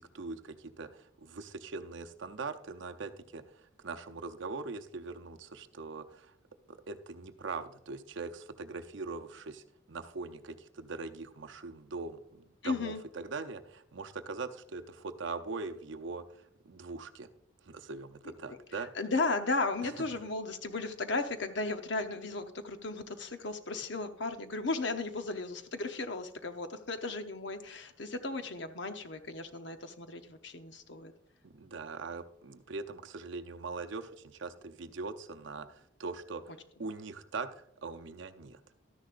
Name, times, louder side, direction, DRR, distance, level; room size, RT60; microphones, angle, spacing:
voice 1, 0.0-6.3 6.7-17.3 17.6-18.9 19.8-19.9 31.4-36.5 36.8-38.6, right 4 dB, 65° right, 7 dB, 0.6 m, -42 dB
voice 2, 12.6-13.0 18.5-31.1, left 3 dB, 60° left, 8 dB, 0.8 m, -35 dB
13.0 x 10.5 x 2.5 m, 0.77 s
head